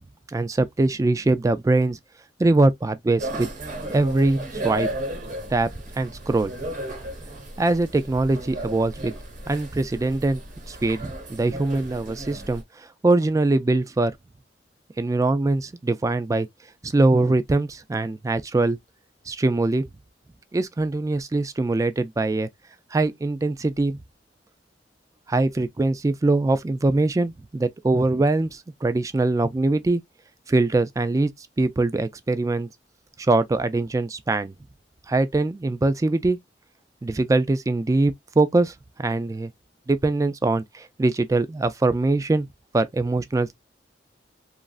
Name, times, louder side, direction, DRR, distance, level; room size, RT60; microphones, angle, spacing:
voice 1, 0.3-2.0 2.4-3.5 3.9-4.9 5.5-5.7 6.0-6.5 7.6-9.1 9.5-10.4 10.7-12.6 13.0-14.1 15.0-16.5 16.8-18.8 19.3-19.8 20.5-22.5 22.9-24.0 25.3-30.0 30.5-31.3 31.6-32.7 33.2-34.5 35.1-36.4 37.0-38.7 39.0-39.5 39.9-42.5 42.7-43.5, right 2 dB, 20° right, 0.3 m, -22 dB
sound 1, 3.2-12.6, right 1 dB, 45° right, 1.2 m, -34 dB
3.0 x 2.5 x 2.3 m
head